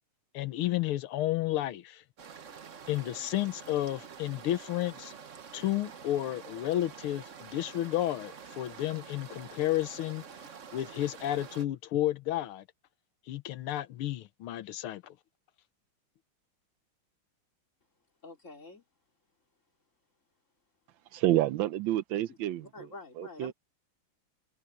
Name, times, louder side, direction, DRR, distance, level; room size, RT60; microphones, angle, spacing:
voice 1, 0.3-2.0 2.9-5.1 5.5-10.2 10.7-12.6 13.3-15.2, left 14 dB, 90° left, 1.7 m, -32 dB
sound 1, 2.2-11.7, right 6 dB, 45° right, 1.2 m, -48 dB
voice 2, 18.2-18.8 22.3-23.5, left 3 dB, 35° left, 3.8 m, -48 dB
voice 3, 21.1-22.9 23.2-23.5, right 13 dB, 75° right, 1.3 m, -29 dB
omnidirectional pair, 2.3 m